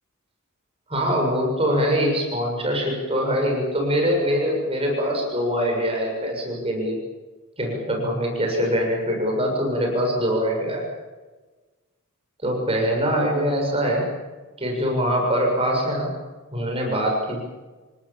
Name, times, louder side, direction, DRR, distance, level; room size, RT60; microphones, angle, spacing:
voice 1, 0.9-7.0 7.6-10.8 12.4-14.1 14.6-16.1 16.5-17.4, equal, 25° right, 1 dB, 6.9 m, -23 dB
29.0 x 18.0 x 7.4 m, 1.3 s
head